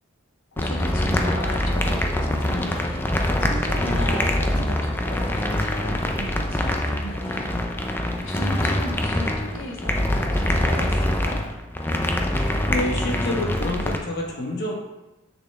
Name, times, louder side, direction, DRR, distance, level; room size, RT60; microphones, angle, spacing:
voice 1, 0.5-7.4 8.2-11.4, left 1 dB, 75° left, 0 dB, 1.3 m, -36 dB
sound 1, 0.6-14.0, left 1 dB, 10° left, 0.5 m, -24 dB
voice 2, 12.3-14.7, left 1 dB, 50° left, -1 dB, 1.4 m, -28 dB
6.6 x 6.2 x 3.4 m, 1.0 s
head